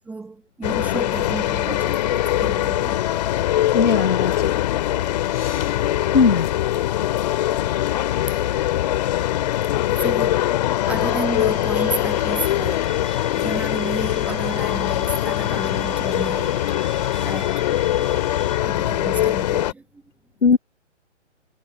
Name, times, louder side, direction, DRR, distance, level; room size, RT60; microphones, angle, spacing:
voice 1, 0.0-3.0 5.7-5.9 8.3-8.4 9.9-10.5 10.9-13.0 13.4-16.8 17.2-17.7 18.6-20.0, right 3 dB, 5° right, 1.4 m, -32 dB
sound 1, 0.6-19.7, left 13 dB, 35° left, 2.4 m, -22 dB
voice 2, 3.7-4.5 5.3-5.7 6.1-6.5 20.4-20.6, left 5 dB, 70° left, 1.0 m, -19 dB
sound 2, 10.9-18.6, right 3 dB, 75° right, 5.3 m, -42 dB
figure-of-eight pair, 130°, 37 cm